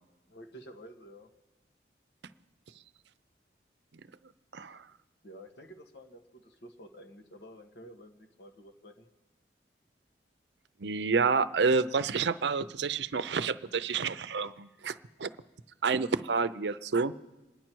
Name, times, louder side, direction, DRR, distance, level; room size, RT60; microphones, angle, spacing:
voice 1, 0.3-1.3 5.2-9.1, equal, 80° left, 4 dB, 1.6 m, -50 dB
voice 2, 10.8-15.3 15.8-17.1, right 4 dB, 80° right, 13 dB, 0.6 m, -29 dB
27.5 x 10.5 x 4.6 m, 1.1 s
head